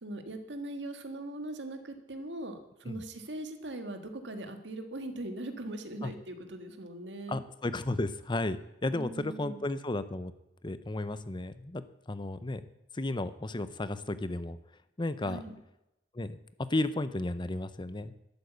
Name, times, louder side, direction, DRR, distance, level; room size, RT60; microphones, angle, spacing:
voice 1, 0.0-7.4 8.9-9.6 15.2-15.5, right 1 dB, 80° right, 7 dB, 1.7 m, -40 dB
voice 2, 7.3-10.3 10.6-12.7 12.9-14.6 15.0-15.4 16.1-16.4 16.7-18.3, left 2 dB, 25° left, 13 dB, 0.7 m, -33 dB
12.5 x 8.4 x 8.1 m, 0.89 s
head